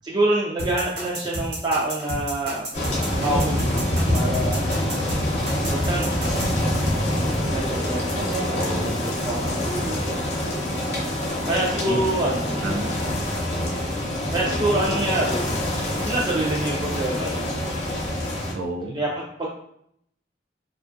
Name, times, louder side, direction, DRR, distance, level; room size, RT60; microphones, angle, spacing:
voice 1, 0.0-2.7 3.2-3.8 4.1-4.7 5.7-10.2 11.5-12.5 13.0-13.1 14.3-15.5 16.0-17.5 18.9-19.5, right 1 dB, 25° right, -4 dB, 0.4 m, -27 dB
sound 1, 0.6-6.5, right 1 dB, 60° right, 1.0 m, -31 dB
sound 2, 2.7-18.5, left 1 dB, 40° left, 0.7 m, -25 dB
voice 2, 8.5-9.1 11.8-12.2 12.6-13.7 18.5-19.0, right 1 dB, 80° right, 2 dB, 0.5 m, -32 dB
2.6 x 2.4 x 2.5 m, 0.72 s
head